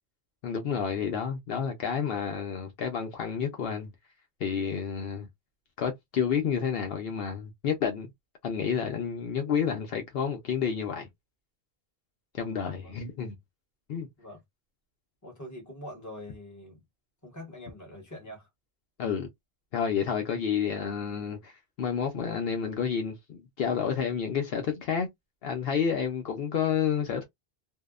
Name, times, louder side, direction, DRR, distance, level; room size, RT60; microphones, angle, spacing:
voice 1, 0.4-3.9 4.4-5.3 5.8-8.1 8.4-11.1 12.3-13.3 13.9-14.1 19.0-19.3 19.7-21.5 21.8-25.1 25.4-27.2, left 7 dB, 70° left, 0.8 m, -30 dB
voice 2, 15.2-16.8 17.2-18.5, left 1 dB, 20° left, 1.0 m, -44 dB
2.7 x 2.0 x 2.3 m
omnidirectional pair, 1.1 m